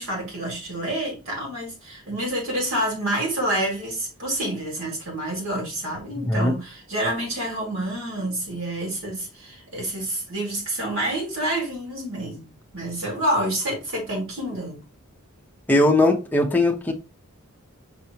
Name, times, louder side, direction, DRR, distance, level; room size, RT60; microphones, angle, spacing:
voice 1, 0.0-14.8, right 1 dB, 60° right, 2.4 m, -28 dB
voice 2, 15.7-16.9, left 2 dB, 10° left, 0.7 m, -19 dB
5.5 x 3.3 x 2.9 m
head